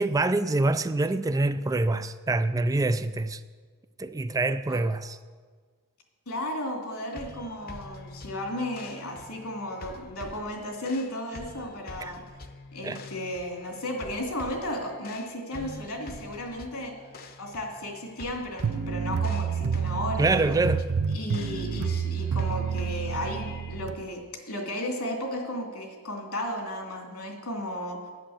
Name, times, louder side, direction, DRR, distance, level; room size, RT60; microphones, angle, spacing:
voice 1, 0.0-3.4 4.0-5.2 12.0-12.1 12.8-13.0 20.2-20.9, right 2 dB, 15° right, 0.3 m, -25 dB
voice 2, 6.3-12.2 12.7-16.9 17.4-20.6 21.1-28.0, left 1 dB, 85° left, 2.8 m, -34 dB
sound 1, 7.1-23.8, left 2 dB, 45° left, 0.9 m, -46 dB
sound 2, 18.6-23.9, right 6 dB, 80° right, 0.5 m, -29 dB
10.0 x 10.0 x 7.2 m
head